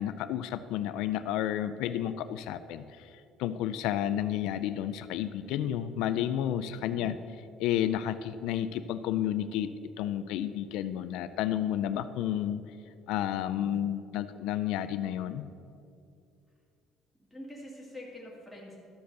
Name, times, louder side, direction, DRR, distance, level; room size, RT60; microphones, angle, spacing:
voice 1, 0.0-3.1 3.4-7.2 7.6-12.6 13.1-15.5, left 11 dB, 85° left, 12 dB, 0.4 m, -31 dB
voice 2, 6.7-7.1 17.3-18.8, left 1 dB, ahead, -6 dB, 2.2 m, -46 dB
13.0 x 5.2 x 6.7 m, 2.5 s
cardioid pair, 175°, 0 cm